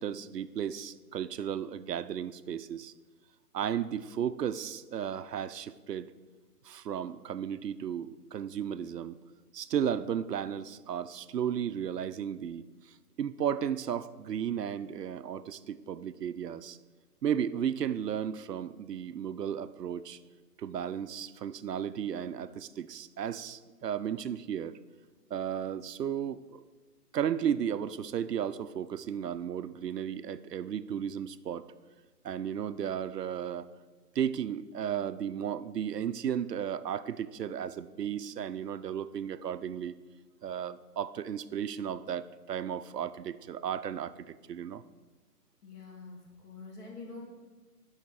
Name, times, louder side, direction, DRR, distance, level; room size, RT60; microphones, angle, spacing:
voice 1, 0.0-2.9 3.5-6.1 6.6-9.2 9.5-12.7 13.2-16.8 17.2-20.2 20.6-24.8 25.3-26.6 27.1-31.7 32.2-33.7 34.2-40.0 40.4-44.8, right 9 dB, 80° right, 14 dB, 0.6 m, -34 dB
voice 2, 45.6-46.2 46.4-47.2, left 3 dB, 70° left, -2 dB, 2.9 m, -45 dB
7.0 x 5.6 x 6.3 m, 1.3 s
hypercardioid pair, 175°, 48 cm